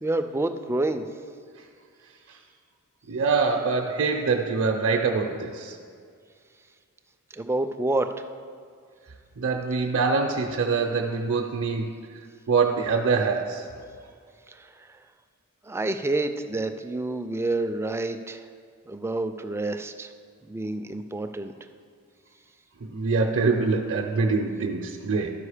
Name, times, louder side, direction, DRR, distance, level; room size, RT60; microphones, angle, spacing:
voice 1, 0.0-1.0 7.3-8.1 14.5-14.7 15.7-18.4 18.9-20.1 20.4-21.5, right 2 dB, 10° right, 8 dB, 0.3 m, -28 dB
voice 2, 3.1-5.7 9.4-11.9 12.5-13.6 22.9-25.3, right 4 dB, 60° right, 1 dB, 0.6 m, -24 dB
12.5 x 5.0 x 4.9 m, 2.2 s
head